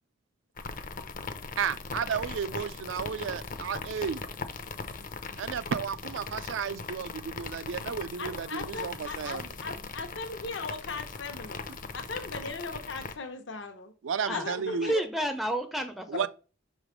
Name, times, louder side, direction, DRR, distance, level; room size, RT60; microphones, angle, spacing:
sound 1, 0.6-13.1, left 4 dB, 45° left, 0.6 m, -39 dB
voice 1, 1.6-4.2 5.4-9.5 14.0-14.9 16.1-16.3, right 7 dB, 75° right, 0.4 m, -33 dB
voice 2, 8.2-11.6 11.9-13.9 14.3-15.0, left 3 dB, 70° left, 0.9 m, -38 dB
voice 3, 14.8-16.3, right 1 dB, ahead, 0.4 m, -30 dB
5.8 x 3.2 x 5.0 m
head